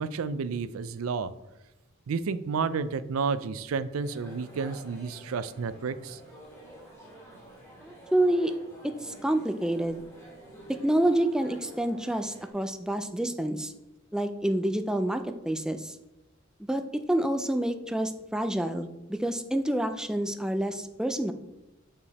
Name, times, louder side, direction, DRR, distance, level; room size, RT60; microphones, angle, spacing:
voice 1, 0.0-1.3 2.1-6.2, right 5 dB, 80° right, 15 dB, 0.4 m, -31 dB
sound 1, 4.0-12.5, right 1 dB, 15° left, 2.1 m, -49 dB
voice 2, 7.8-8.5 9.0-10.0 10.7-13.7 14.1-16.0 16.7-16.8 17.1-21.3, right 1 dB, 5° right, 8 dB, 0.3 m, -28 dB
6.8 x 5.5 x 4.1 m, 0.95 s
head